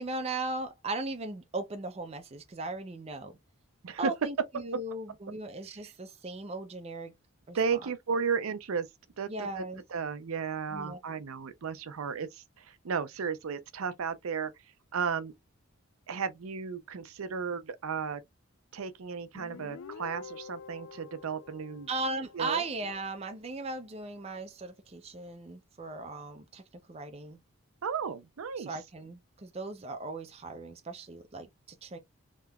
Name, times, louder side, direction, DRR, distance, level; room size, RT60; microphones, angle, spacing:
voice 1, 0.0-3.4 4.0-7.1 7.5-7.8 9.3-9.8 10.7-11.0 21.9-26.6 26.9-27.4 28.6-32.0, right 2 dB, 30° right, 0.4 m, -37 dB
voice 2, 7.5-8.9 9.2-14.5 14.9-15.3 16.1-18.2 18.7-21.9 22.3-22.6 27.8-28.8, right 6 dB, 80° right, 0.5 m, -34 dB
Guitar, 19.3-22.8, left 5 dB, 75° left, 0.4 m, -47 dB
3.4 x 2.9 x 2.2 m
head